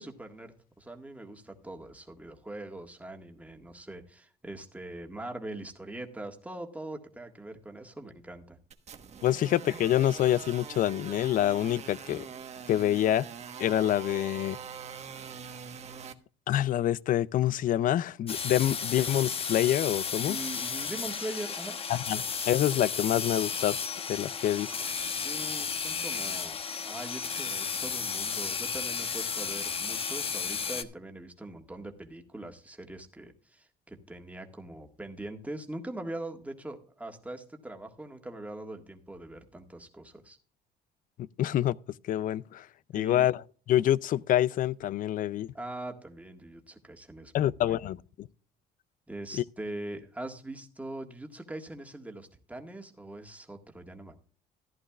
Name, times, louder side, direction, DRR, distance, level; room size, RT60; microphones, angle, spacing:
voice 1, 0.0-8.6 20.2-21.8 25.1-26.6 26.8-40.4 42.9-43.3 45.5-47.8 49.1-54.2, right 1 dB, 10° right, 1.7 m, -42 dB
sound 1, 8.7-16.1, right 7 dB, 40° right, 1.2 m, -43 dB
voice 2, 9.2-12.2 12.7-13.3 13.6-14.6 16.5-20.4 21.9-23.8 24.1-24.9 41.4-41.8 42.0-42.7 42.9-43.4 43.7-45.5 47.3-48.3 49.3-49.4, left 12 dB, 55° left, 0.4 m, -26 dB
sound 2, 18.3-30.8, left 6 dB, 35° left, 1.0 m, -33 dB
14.5 x 11.0 x 2.4 m
cardioid pair, 110°, 17 cm